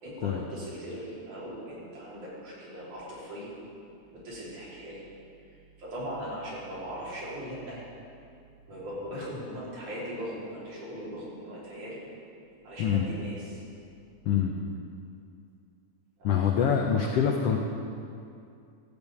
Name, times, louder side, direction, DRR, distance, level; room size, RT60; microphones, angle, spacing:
voice 1, 0.0-3.5 4.1-5.0 5.8-7.8 8.7-12.0 12.6-13.6 16.2-16.4, equal, 65° right, -8 dB, 4.8 m, -39 dB
voice 2, 12.8-13.1 14.3-14.5 16.2-17.6, left 7 dB, 85° left, 1 dB, 1.3 m, -25 dB
14.0 x 5.3 x 8.3 m, 2.4 s
omnidirectional pair, 3.7 m